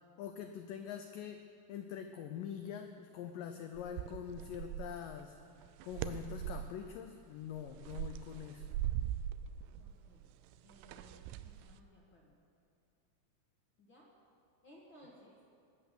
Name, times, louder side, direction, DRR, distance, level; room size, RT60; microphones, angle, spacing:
voice 1, 0.2-5.4 5.8-8.7, left 9 dB, 85° left, 6 dB, 1.9 m, -44 dB
sound 1, 3.8-5.1 5.6-6.8 7.4-11.8, right 12 dB, 85° right, 2.6 m, -41 dB
voice 2, 9.8-10.3 10.6-12.4 13.8-14.1 14.6-15.4, equal, 45° left, -4 dB, 1.6 m, -61 dB
20.5 x 8.2 x 6.6 m, 2.4 s
omnidirectional pair, 4.6 m